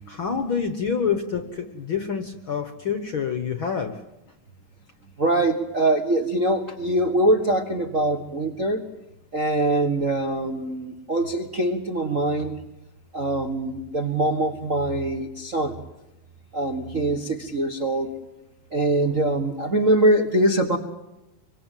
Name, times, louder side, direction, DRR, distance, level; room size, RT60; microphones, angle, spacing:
voice 1, 0.1-3.9 19.0-19.1, left 6 dB, 55° left, 8 dB, 1.5 m, -27 dB
voice 2, 5.2-8.8 9.3-12.6 13.1-15.8 16.5-18.1 18.7-20.8, right 1 dB, 40° right, 3 dB, 1.2 m, -23 dB
26.0 x 24.5 x 9.2 m, 0.93 s
omnidirectional pair, 3.9 m